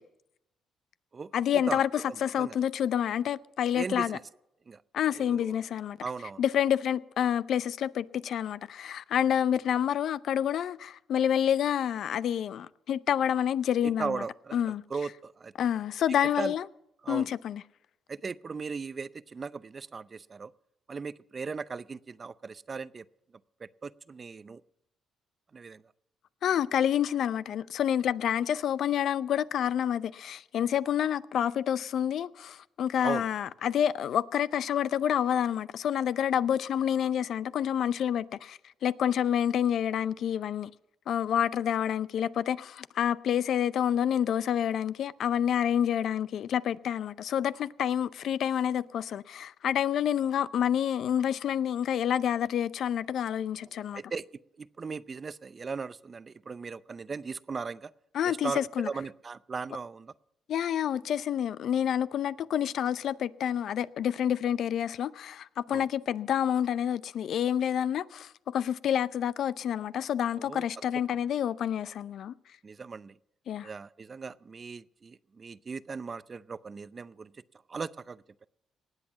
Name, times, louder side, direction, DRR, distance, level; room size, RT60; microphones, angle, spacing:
voice 1, 1.3-4.2 4.9-6.0 6.4-14.2 14.5-14.8 15.6-16.6 17.1-17.6 26.4-40.7 41.1-54.0 58.1-58.9 60.5-72.3 73.5-73.7, left 9 dB, 70° left, 0.5 m, -28 dB
voice 2, 2.1-2.6 3.8-4.2 4.7-4.8 5.3-5.6 6.0-6.4 13.8-15.5 16.4-16.5 17.0-17.3 18.1-20.5 20.9-23.1 23.6-24.6 25.5-25.8 33.0-33.2 53.9-54.3 54.6-57.9 58.2-60.1 65.7-65.8 70.4-70.7 72.6-73.2 73.6-77.3 77.7-78.5, right 5 dB, 35° right, 0.5 m, -38 dB
19.0 x 8.1 x 7.2 m
cardioid pair, 90°, 0 cm